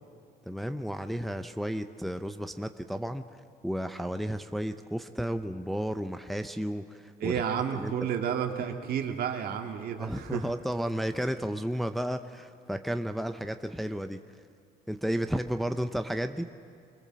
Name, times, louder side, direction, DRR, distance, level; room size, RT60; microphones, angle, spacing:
voice 1, 0.5-3.2 3.6-7.4 7.7-7.9 10.0-14.2 14.9-16.5, equal, ahead, 8 dB, 0.7 m, -32 dB
voice 2, 7.2-10.5, right 8 dB, 65° right, 4 dB, 2.0 m, -31 dB
24.0 x 19.5 x 7.5 m, 2.5 s
cardioid pair, 110°, 17 cm